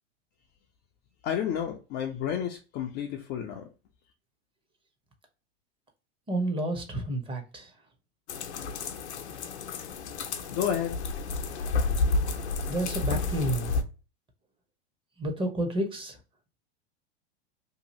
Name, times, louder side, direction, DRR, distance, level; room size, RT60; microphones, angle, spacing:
voice 1, 1.2-3.7 10.2-11.0, left 9 dB, 30° left, 0.4 m, -31 dB
voice 2, 6.3-7.7 12.7-13.7 15.2-16.2, right 1 dB, 15° right, 0.7 m, -30 dB
sound 1, 8.3-13.8, left 3 dB, 85° left, 0.6 m, -30 dB
2.8 x 2.4 x 2.8 m
hypercardioid pair, 105°, 33 cm